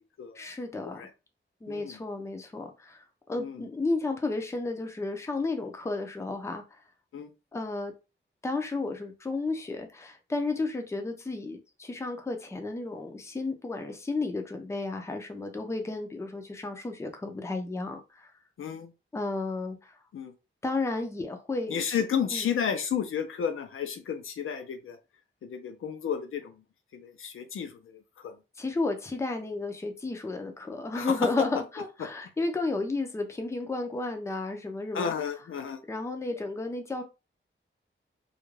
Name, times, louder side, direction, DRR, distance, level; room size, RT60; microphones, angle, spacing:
voice 1, 0.4-1.0 1.6-6.6 7.5-7.9 8.4-18.3 19.1-19.8 20.6-21.8 22.3-22.5 28.6-35.1 35.9-37.0, left 3 dB, 15° left, 0.4 m, -32 dB
voice 2, 1.7-2.0 3.4-3.6 7.1-7.3 18.6-18.9 20.1-20.3 21.7-25.0 25.4-26.6 26.9-28.3 30.9-31.1 34.9-35.8, left 7 dB, 80° left, 0.5 m, -32 dB
2.4 x 2.1 x 3.0 m
wide cardioid pair, 155°, 21 cm